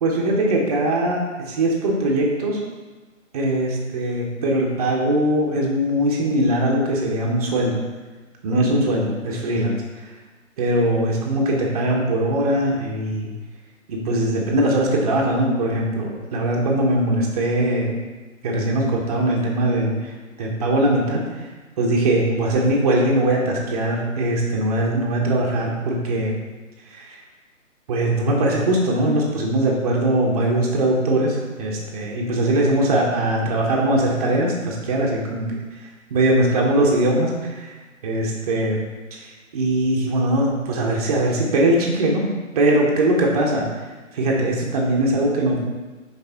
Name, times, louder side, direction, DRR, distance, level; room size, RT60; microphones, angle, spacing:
voice 1, 0.0-2.6 3.3-7.8 8.4-9.8 10.6-13.3 13.9-18.0 18.4-20.1 20.4-21.2 21.8-26.3 26.9-27.2 27.9-35.4 36.1-37.7 38.0-38.8 39.1-42.3 42.5-43.6 44.1-45.6, right 1 dB, 30° right, -2 dB, 1.0 m, -21 dB
5.8 x 4.0 x 4.0 m, 1.3 s
figure-of-eight pair, 140°, 40 cm